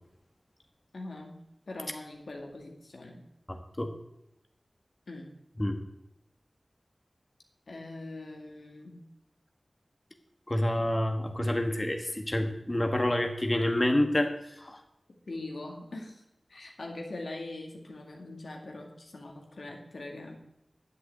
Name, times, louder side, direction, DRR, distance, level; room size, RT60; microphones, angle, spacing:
voice 1, 0.9-3.2 5.1-5.3 7.7-9.0 15.3-16.2 16.5-20.4, left 2 dB, 85° left, 1 dB, 2.1 m, -42 dB
voice 2, 3.5-3.9 5.6-5.8 10.5-14.3 14.6-14.8, left 1 dB, 30° left, 4 dB, 1.6 m, -28 dB
9.9 x 8.0 x 8.4 m, 0.87 s
wide cardioid pair, 40°, 0 cm